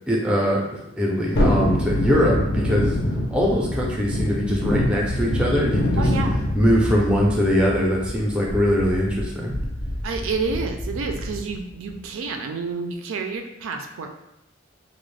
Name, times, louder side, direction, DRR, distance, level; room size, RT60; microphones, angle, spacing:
voice 1, 0.1-0.6 1.0-3.0 3.3-6.1 6.5-9.5, equal, 5° right, -3 dB, 0.4 m, -21 dB
Thunderstorm, 1.3-11.6 11.9-12.0, left 1 dB, 50° left, 0.5 m, -25 dB
voice 2, 6.0-6.4 10.0-14.1, right 4 dB, 75° right, 5 dB, 0.4 m, -29 dB
2.4 x 2.0 x 3.2 m, 0.87 s
head